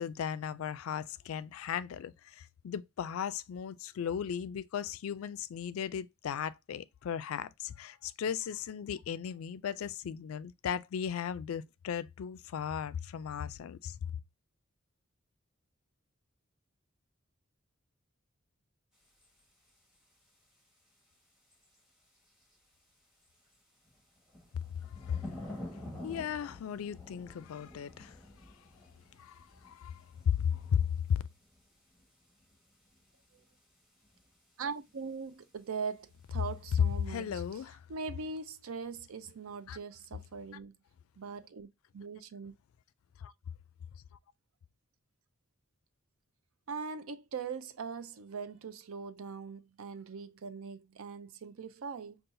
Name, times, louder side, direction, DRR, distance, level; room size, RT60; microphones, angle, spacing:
voice 1, 0.0-14.0 24.9-25.3 26.0-28.2 29.2-31.2 37.1-37.8 39.7-39.8 43.2-43.3, left 8 dB, 85° left, 0.3 m, -36 dB
sound 1, 19.0-20.3 20.8-20.9 21.5-22.8 23.2-37.6, left 1 dB, 5° right, 1.3 m, -51 dB
voice 2, 34.6-37.6 37.9-40.7 41.2-41.7 41.9-42.5 46.7-52.2, right 5 dB, 85° right, 0.5 m, -41 dB
5.4 x 2.4 x 2.5 m
head